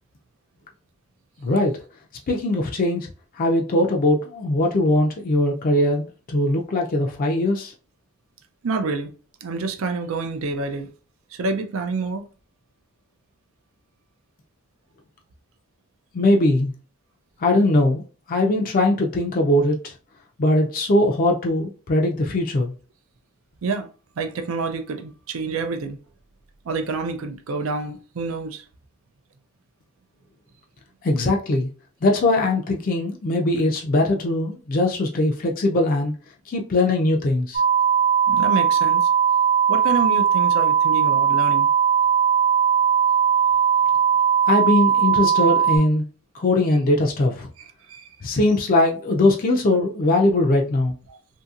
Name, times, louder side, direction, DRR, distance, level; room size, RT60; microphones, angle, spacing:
voice 1, 1.4-1.8 2.3-3.1 3.4-7.7 16.1-16.7 17.4-18.0 18.3-19.9 20.4-22.7 31.0-31.7 32.0-36.1 36.5-37.6 44.5-46.0 46.3-47.5 48.2-50.9, left 1 dB, 40° left, 0.4 m, -20 dB
voice 2, 8.6-9.1 9.4-10.9 11.3-12.3 23.6-23.9 24.2-26.0 26.6-28.6 38.3-39.1 39.7-41.7 47.6-48.1 51.1-51.2, right 3 dB, 70° right, 0.5 m, -28 dB
sound 1, 37.5-45.8, right 8 dB, 35° right, 0.8 m, -19 dB
2.7 x 2.7 x 2.4 m
head